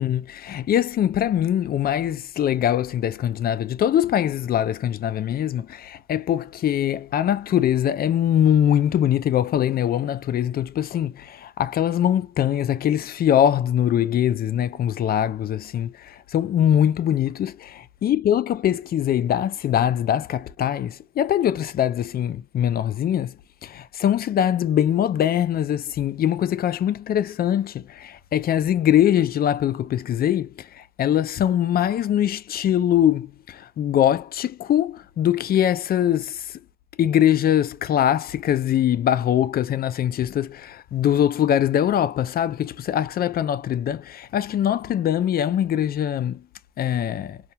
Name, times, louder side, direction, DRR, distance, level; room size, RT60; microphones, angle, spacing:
voice 1, 0.0-23.3 23.6-36.5 37.0-46.4 46.8-47.4, left 10 dB, 50° left, 0.4 m, -22 dB
2.4 x 2.2 x 2.8 m
cardioid pair, 90°, 20 cm